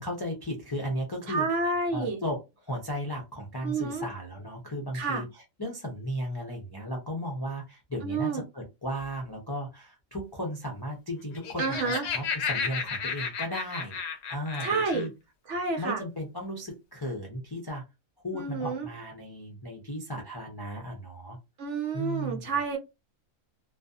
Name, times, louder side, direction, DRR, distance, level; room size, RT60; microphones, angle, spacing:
voice 1, 0.0-1.5 1.9-14.0 14.3-15.1 15.8-17.8 18.2-21.4 21.9-22.5, equal, 35° left, 0 dB, 0.4 m, -35 dB
voice 2, 1.3-2.2 3.6-4.1 4.9-5.2 8.0-8.4 11.6-12.0 14.6-15.1 15.5-16.0 18.3-18.9 21.6-22.8, right 4 dB, 65° right, 3 dB, 0.9 m, -29 dB
Laughter, 11.2-15.1, left 6 dB, 65° left, 0.8 m, -33 dB
2.5 x 2.3 x 2.3 m, 0.24 s
omnidirectional pair, 1.4 m